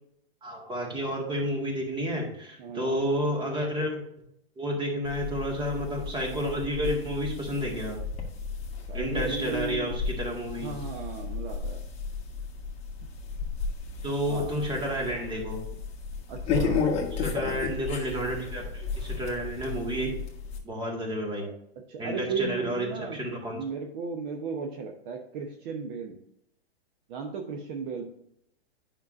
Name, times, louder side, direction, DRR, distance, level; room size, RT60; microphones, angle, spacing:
voice 1, 0.4-4.3 4.6-8.0 8.9-10.7 14.0-15.6 17.2-20.1 20.6-21.5 22.0-23.6, equal, 15° right, 0 dB, 2.0 m, -31 dB
voice 2, 2.6-3.0 8.9-9.9 10.6-11.8 14.3-14.5 16.3-16.9 21.4-21.6 21.9-23.2 23.5-26.2 27.1-28.1, right 5 dB, 45° right, 2 dB, 1.0 m, -35 dB
sound 1, 5.0-20.6, left 5 dB, 20° left, 1.5 m, -34 dB
9.3 x 5.8 x 2.6 m, 0.74 s
hypercardioid pair, 120°, 31 cm